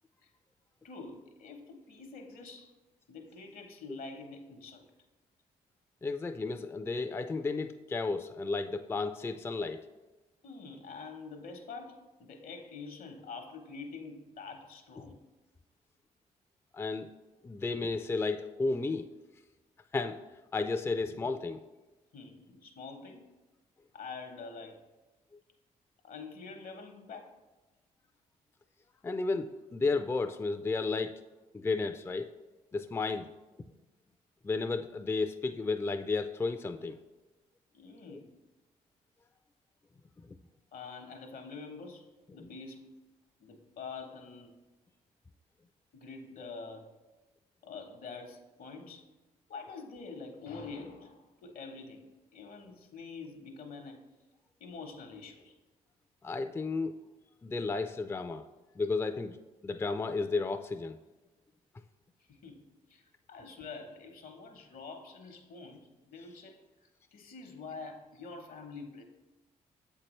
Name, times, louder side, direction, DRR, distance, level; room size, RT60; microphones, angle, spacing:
voice 1, 0.8-2.7 3.1-4.8 10.4-15.2 22.1-23.2 23.9-24.8 26.0-27.3 37.7-38.3 40.7-42.1 42.3-43.0 43.4-44.5 45.9-46.9 47.6-49.1 49.5-54.0 54.6-55.5 62.3-63.0 63.3-66.6 67.1-69.0, left 4 dB, 70° left, 5 dB, 0.9 m, -46 dB
voice 2, 6.0-9.8 16.7-17.1 17.4-19.1 19.9-20.2 20.5-21.6 29.0-31.2 31.5-32.3 32.7-33.3 34.4-37.0 38.1-38.2 56.2-56.9 57.4-58.4 58.8-59.4 59.6-61.0, left 3 dB, 15° left, 8 dB, 0.3 m, -33 dB
7.3 x 4.5 x 3.1 m, 1.1 s
supercardioid pair, 50°, 15 cm